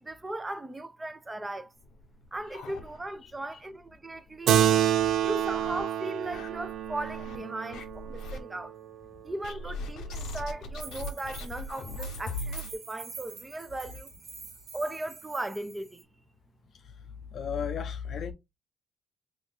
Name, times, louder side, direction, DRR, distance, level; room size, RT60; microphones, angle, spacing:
voice 1, 0.0-1.7 2.3-4.7 5.2-8.7 9.2-14.1 14.7-16.0, right 2 dB, 20° right, 0.5 m, -37 dB
sound 1, 1.8-3.4 3.7-3.8 4.2-4.3 4.9-5.8 6.3-7.4 7.7-8.4 9.4-12.7, left 2 dB, 85° left, 0.9 m, -40 dB
Keyboard (musical), 4.5-9.3, right 10 dB, 80° right, 0.4 m, -28 dB
sound 2, 7.4-7.5 7.8-7.9 10.8-16.0, right 5 dB, 60° right, 1.4 m, -46 dB
voice 2, 17.3-18.3, left 7 dB, 60° left, 0.6 m, -34 dB
3.1 x 2.5 x 3.5 m
cardioid pair, 90°, 0 cm